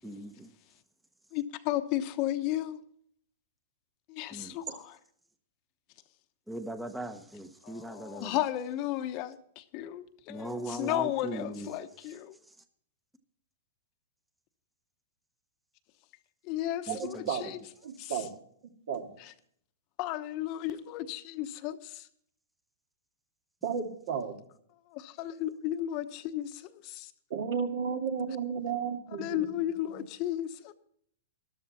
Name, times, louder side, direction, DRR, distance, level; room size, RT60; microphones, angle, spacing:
voice 1, 0.0-0.5 4.3-4.5 6.5-8.4 10.3-11.7 16.9-17.0, right 1 dB, 5° right, 0.9 m, -39 dB
voice 2, 1.3-2.8 4.1-5.0 7.6-12.4 16.5-17.6 18.0-18.2 19.2-19.3 20.0-22.1 24.9-27.1 29.2-30.7, left 13 dB, 40° left, 1.0 m, -34 dB
voice 3, 16.9-17.5 17.8-18.3 18.9-19.1 23.6-24.3 27.3-29.6 29.9-30.0, right 6 dB, 65° right, 2.2 m, -33 dB
13.5 x 12.0 x 4.2 m
hypercardioid pair, 135°, 0 cm